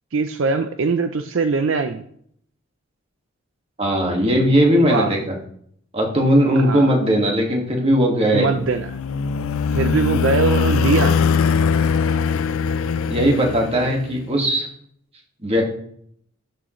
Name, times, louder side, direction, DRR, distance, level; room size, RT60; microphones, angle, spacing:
voice 1, 0.1-2.0 4.8-5.2 6.6-6.9 8.3-8.9 9.7-11.2 13.7-13.9, right 4 dB, 65° right, 8 dB, 0.5 m, -21 dB
voice 2, 3.8-5.3 5.9-8.5 13.1-14.7 15.4-15.6, equal, 25° right, 0 dB, 1.8 m, -18 dB
sound 1, 8.5-14.2, left 6 dB, 75° left, 0.4 m, -21 dB
12.0 x 6.2 x 3.1 m, 0.66 s
head